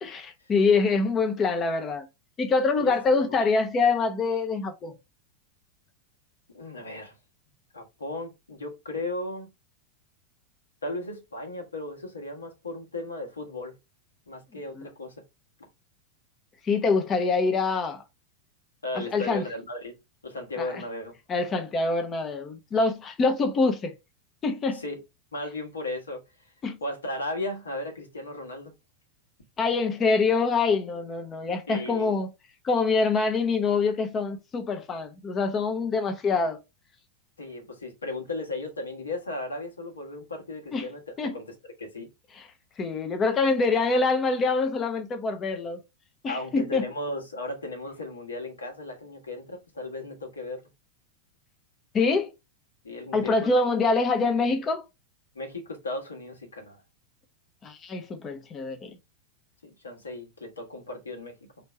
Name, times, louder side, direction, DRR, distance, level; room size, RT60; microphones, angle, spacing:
voice 1, 0.0-2.1 2.4-5.0 14.8-14.9 16.6-18.0 19.1-19.5 20.6-20.8 21.3-23.9 24.4-24.8 26.6-26.8 29.6-32.3 32.6-36.6 40.7-40.9 41.2-41.4 42.3-42.5 42.8-45.8 46.2-46.9 51.9-52.3 53.1-54.8 57.6-58.9, left 4 dB, 25° left, 0.9 m, -25 dB
voice 2, 6.5-7.1 7.7-9.5 10.8-13.7 14.3-15.1 18.8-19.9 20.2-21.2 24.7-25.0 25.3-26.2 26.8-28.7 31.7-32.1 37.4-41.0 41.3-41.4 41.8-42.1 46.3-50.6 52.8-53.6 55.3-56.8 59.6-61.4, left 2 dB, 75° left, 1.4 m, -35 dB
4.3 x 2.7 x 3.2 m
figure-of-eight pair, 90°, 0 cm